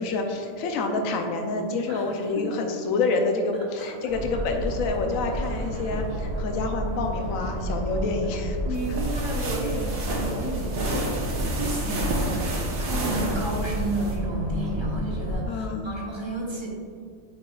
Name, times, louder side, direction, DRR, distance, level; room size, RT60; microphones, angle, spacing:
voice 1, 0.0-8.6 14.8-14.9 15.5-15.9, left 3 dB, 80° left, 3 dB, 1.1 m, -28 dB
sound 1, 4.1-15.4, right 1 dB, 60° right, 1.0 m, -31 dB
voice 2, 8.6-11.2 11.5-12.5 12.8-16.7, right 1 dB, 20° right, -4 dB, 1.0 m, -31 dB
sound 2, 8.7-14.2, right 1 dB, 80° right, 1.4 m, -31 dB
8.4 x 5.2 x 2.4 m, 2.4 s
omnidirectional pair, 1.4 m